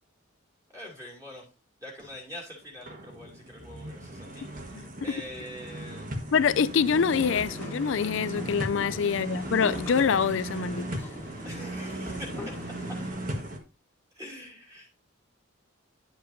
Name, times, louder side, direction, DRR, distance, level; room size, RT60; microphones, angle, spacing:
voice 1, 0.7-1.5 1.8-6.1 8.9-9.2 11.4-12.6 14.1-14.9, left 1 dB, 15° right, 2.8 m, -44 dB
sound 1, 2.0-2.2 2.6-13.6, right 1 dB, 40° right, 1.5 m, -37 dB
voice 2, 6.3-11.0, left 6 dB, 65° left, 0.4 m, -25 dB
sound 2, 6.9-13.1, left 1 dB, 10° left, 1.6 m, -42 dB
9.9 x 7.6 x 2.7 m
head